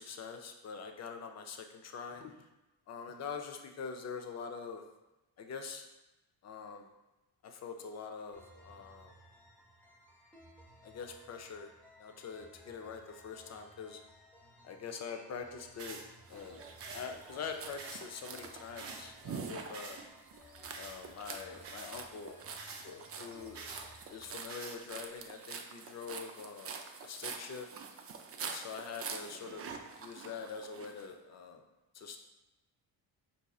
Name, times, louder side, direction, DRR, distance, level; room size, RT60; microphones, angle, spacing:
voice 1, 0.0-2.3 2.9-4.8 5.4-5.9 6.4-6.9 7.4-9.1 10.8-11.7 12.0-14.0 14.6-16.0 16.3-16.6 16.9-20.0 20.8-22.4 22.8-23.6 24.1-26.8 27.0-27.7 28.4-29.7 30.0-31.6 31.9-32.2, left 5 dB, 40° left, 5 dB, 0.5 m, -44 dB
sound 1, 8.3-24.3, left 1 dB, 5° left, 0.7 m, -59 dB
sound 2, 15.8-16.0 16.8-17.1 17.8-18.0 18.8-19.0 19.7-20.0 20.7-21.0 21.6-21.9 22.6-22.9 23.5-23.8 24.5-24.8, right 4 dB, 65° right, 0.7 m, -46 dB
sound 3, 16.3-31.1, right 5 dB, 35° right, 0.4 m, -46 dB
4.5 x 2.7 x 2.3 m, 1.0 s
cardioid pair, 75°, 44 cm